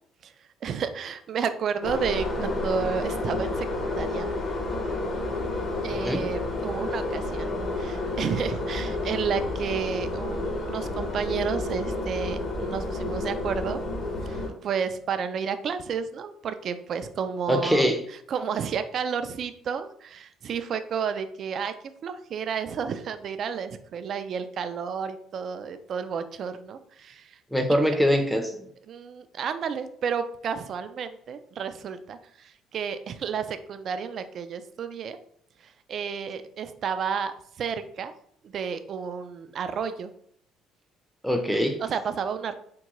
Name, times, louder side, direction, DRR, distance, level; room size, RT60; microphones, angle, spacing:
voice 1, 0.2-4.3 5.8-13.8 14.2-21.7 22.0-27.4 28.9-35.2 35.6-38.1 38.4-40.1 41.8-42.5, right 6 dB, 55° right, 10 dB, 0.3 m, -31 dB
sound 1, 1.8-14.5, left 2 dB, 45° left, 1.0 m, -30 dB
voice 2, 17.5-18.0 27.5-28.6 41.2-41.8, equal, ahead, 5 dB, 0.5 m, -23 dB
3.6 x 2.2 x 3.0 m, 0.66 s
cardioid pair, 95°, 0 cm